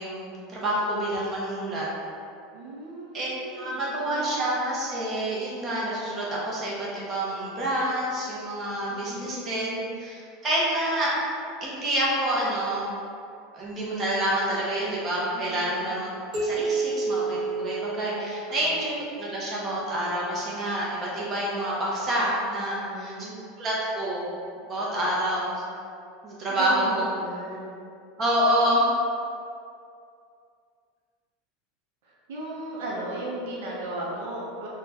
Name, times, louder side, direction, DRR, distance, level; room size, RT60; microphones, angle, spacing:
voice 1, 0.0-1.9 3.1-11.1 11.6-12.9 13.5-23.3 23.6-24.2 24.7-25.6 26.2-26.8 28.2-28.9, right 1 dB, 20° right, -5 dB, 0.6 m, -28 dB
voice 2, 2.5-4.5 8.9-9.9 15.3-16.0 18.4-18.7 22.7-23.3 26.5-27.7 32.0-34.7, right 2 dB, 75° right, -4 dB, 0.5 m, -37 dB
sound 1, 16.3-18.7, right 3 dB, 50° right, 1.3 m, -29 dB
3.7 x 2.1 x 2.8 m, 2.4 s
supercardioid pair, 180°, 0 cm